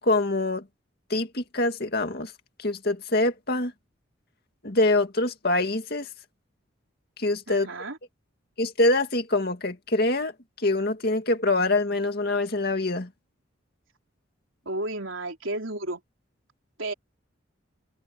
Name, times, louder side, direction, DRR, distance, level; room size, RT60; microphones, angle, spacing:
voice 1, 0.0-0.6 1.1-2.3 2.6-3.7 4.6-6.1 7.2-7.7 8.6-10.3 10.6-13.1, left 2 dB, 50° left, 2.3 m, -24 dB
voice 2, 7.5-8.0 14.7-16.0 16.8-16.9, right 2 dB, 80° right, 3.8 m, -32 dB
head